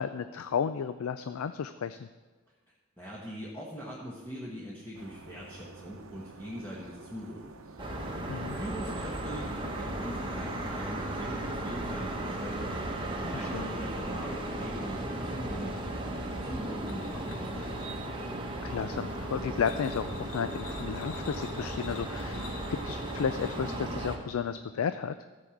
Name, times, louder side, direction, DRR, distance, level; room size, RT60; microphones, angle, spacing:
voice 1, 0.0-2.1 8.3-8.6 13.3-13.7 18.6-22.4 22.7-25.1, left 7 dB, 80° left, 11 dB, 0.4 m, -33 dB
voice 2, 3.0-7.6 8.5-12.7 13.0-15.8 16.4-18.1, equal, 10° left, -6 dB, 1.2 m, -41 dB
sound 1, 4.9-23.4, right 3 dB, 75° right, 0.8 m, -49 dB
sound 2, 7.8-24.2, right 1 dB, 25° right, 1.0 m, -36 dB
sound 3, 16.9-18.3 19.4-23.8, left 4 dB, 65° left, 1.0 m, -48 dB
14.0 x 5.0 x 7.1 m, 1.3 s
head